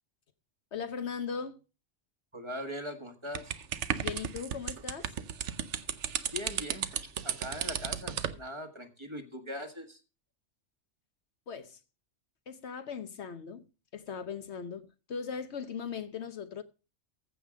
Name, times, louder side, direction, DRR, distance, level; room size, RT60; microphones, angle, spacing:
voice 1, 0.7-1.6 4.0-5.1 11.5-11.8 12.5-13.6 13.9-16.6, left 6 dB, 70° left, 1.2 m, -38 dB
voice 2, 2.3-3.5 6.3-6.9 7.2-10.0, left 1 dB, 25° right, 1.5 m, -41 dB
sound 1, 3.3-8.4, right 8 dB, 80° right, 1.1 m, -34 dB
15.0 x 5.4 x 6.3 m
omnidirectional pair, 1.2 m